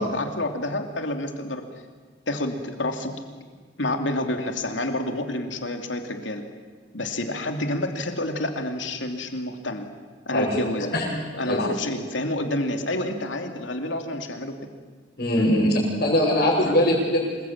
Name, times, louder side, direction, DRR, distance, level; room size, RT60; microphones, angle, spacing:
voice 1, 0.0-1.7 2.3-3.2 3.8-6.5 6.9-9.9 10.3-10.9 11.4-14.6 15.4-15.5 16.6-16.8, left 1 dB, 80° left, 5 dB, 2.9 m, -28 dB
voice 2, 15.2-17.3, left 1 dB, 55° left, -7 dB, 6.7 m, -21 dB
27.5 x 21.5 x 9.0 m, 1.5 s
head